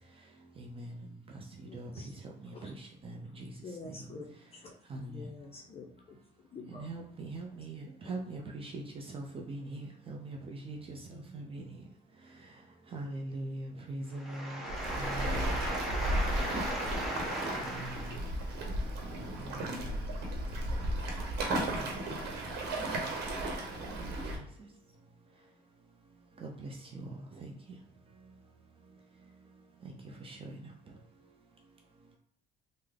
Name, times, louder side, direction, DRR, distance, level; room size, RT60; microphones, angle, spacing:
voice 1, 0.6-0.9 1.7-1.9 2.4-3.4 4.9-5.2 6.7-11.8 12.9-14.6 15.0-15.5 17.6-18.2 19.3-19.7 21.8-21.9 24.0-24.4 26.4-27.1 27.4-27.5 30.0-30.6, right 2 dB, 35° right, 0.5 m, -42 dB
voice 2, 1.6-2.1 2.5-2.7 3.6-6.9 8.0-8.1 11.1-11.4, left 3 dB, 35° left, 0.5 m, -48 dB
voice 3, 14.1-18.2, right 1 dB, ahead, 1.2 m, -37 dB
Waves surf, 14.7-24.4, right 1 dB, 75° right, 0.9 m, -34 dB
3.5 x 2.0 x 3.3 m
cardioid pair, 110°, 17 cm